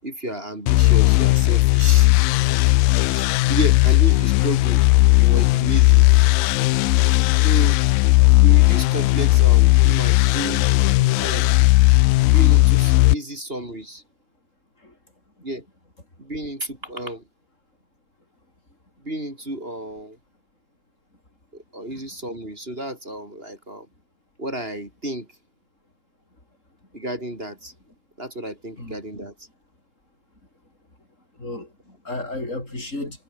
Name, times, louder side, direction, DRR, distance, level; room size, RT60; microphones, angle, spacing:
voice 1, 0.0-2.1 3.1-4.8 5.2-6.1 7.4-7.8 8.4-11.7 12.2-14.0 15.4-15.7 16.2-17.3 19.0-20.2 21.5-23.9 24.4-25.3 26.9-27.7 28.2-29.5, right 1 dB, 15° right, 4.5 m, -32 dB
sound 1, 0.7-13.1, left 20 dB, 85° left, 2.0 m, -16 dB
voice 2, 31.4-33.2, left 2 dB, 15° left, 7.7 m, -33 dB
omnidirectional pair, 4.7 m